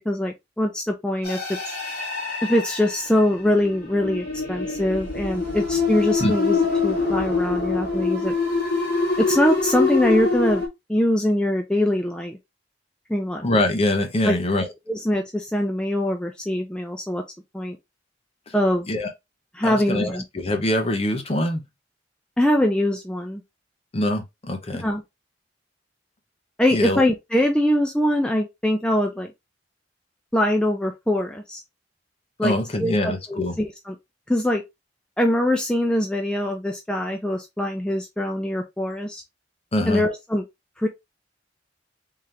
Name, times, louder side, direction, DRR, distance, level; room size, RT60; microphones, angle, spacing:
voice 1, 0.1-1.4 1.7-1.8 2.4-6.6 6.8-8.3 9.2-10.6 10.9-12.4 13.1-13.4 14.3-14.4 14.9-17.2 17.5-17.8 18.5-18.9 19.5-20.2 22.4-23.4 24.8-25.0 26.6-29.3 30.3-31.6 32.4-32.5 32.8-34.0 34.3-34.6 35.2-39.2 39.9-40.4 40.8-40.9, left 1 dB, 5° left, 0.4 m, -23 dB
sound 1, 1.2-10.7, left 4 dB, 55° left, 1.7 m, -25 dB
voice 2, 13.4-14.7 18.5-18.6 18.9-19.1 19.6-21.6 23.9-24.8 26.7-27.0 32.4-33.6 39.7-40.0, left 1 dB, 30° left, 0.7 m, -23 dB
3.7 x 2.8 x 3.2 m
head